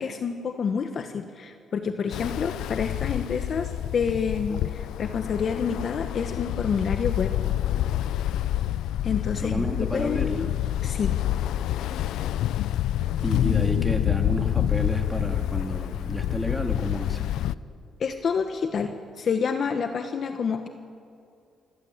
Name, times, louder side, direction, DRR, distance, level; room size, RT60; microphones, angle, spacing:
voice 1, 0.0-7.3 9.0-10.5 10.8-11.2 18.0-20.7, left 6 dB, 55° left, 7 dB, 1.3 m, -28 dB
Ocean, 2.1-17.5, left 12 dB, 85° left, 0.5 m, -27 dB
voice 2, 9.3-10.4 13.2-17.4, equal, 5° left, 3 dB, 2.7 m, -30 dB
27.0 x 15.0 x 8.0 m, 2.5 s
cardioid pair, 90°, 0 cm